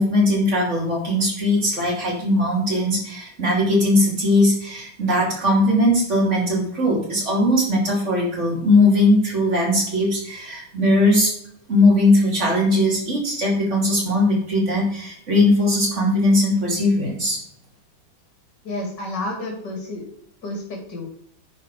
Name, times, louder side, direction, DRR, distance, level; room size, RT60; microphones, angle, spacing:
voice 1, 0.0-11.3 11.7-17.4, left 1 dB, 35° right, -2 dB, 3.2 m, -19 dB
voice 2, 18.6-20.1 20.4-21.0, left 2 dB, 55° left, 1 dB, 2.9 m, -30 dB
9.8 x 5.9 x 4.9 m, 0.66 s
omnidirectional pair, 2.2 m